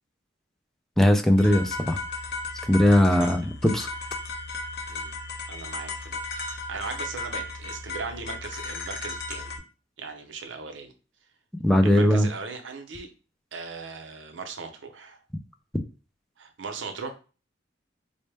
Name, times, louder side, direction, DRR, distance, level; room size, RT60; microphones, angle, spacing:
voice 1, 1.0-2.0 2.7-3.9 11.6-12.3, left 1 dB, ahead, 5 dB, 0.4 m, -19 dB
sound 1, 1.4-9.6, left 3 dB, 60° left, 0.8 m, -35 dB
voice 2, 5.5-9.5 10.0-10.9 11.8-13.1 13.5-15.2 16.4-17.1, right 4 dB, 90° right, 6 dB, 0.7 m, -38 dB
4.1 x 2.1 x 3.3 m, 0.35 s
head